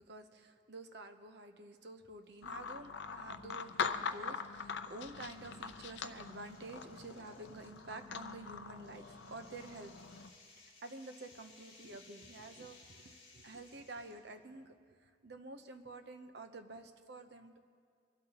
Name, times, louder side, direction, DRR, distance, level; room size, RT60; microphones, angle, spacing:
voice 1, 0.0-9.9 10.4-10.5 10.8-14.7 15.0-17.6, right 2 dB, 60° right, 7 dB, 0.8 m, -50 dB
sound 1, 2.2-2.6 3.1-3.2 4.2-14.3, left 3 dB, 35° left, 3.7 m, -62 dB
sound 2, 2.4-10.3, left 5 dB, 70° left, 0.6 m, -43 dB
25.0 x 12.5 x 2.9 m, 2.2 s
head